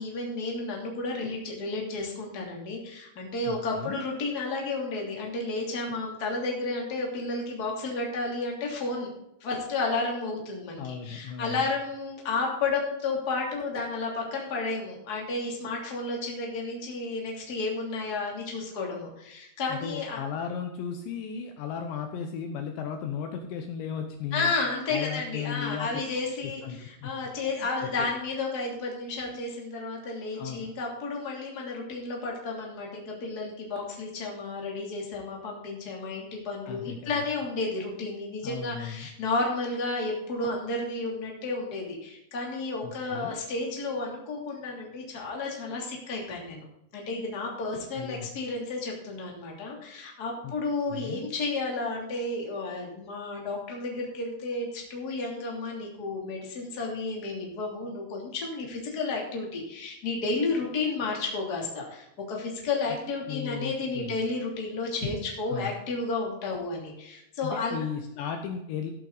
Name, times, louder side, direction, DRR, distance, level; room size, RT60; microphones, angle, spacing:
voice 1, 0.0-9.1 9.4-20.2 24.3-46.6 46.9-67.8, left 3 dB, 25° left, -1 dB, 2.4 m, -32 dB
voice 2, 3.5-4.0 10.8-11.6 19.7-24.5 24.9-25.9 26.4-28.1 30.3-30.7 36.7-37.2 38.4-39.1 42.8-43.4 48.0-48.3 50.4-50.5 50.9-51.3 63.3-64.2 65.5-65.7 67.4-68.9, left 7 dB, 75° left, 5 dB, 2.9 m, -36 dB
14.0 x 8.6 x 3.9 m, 0.81 s
omnidirectional pair, 5.6 m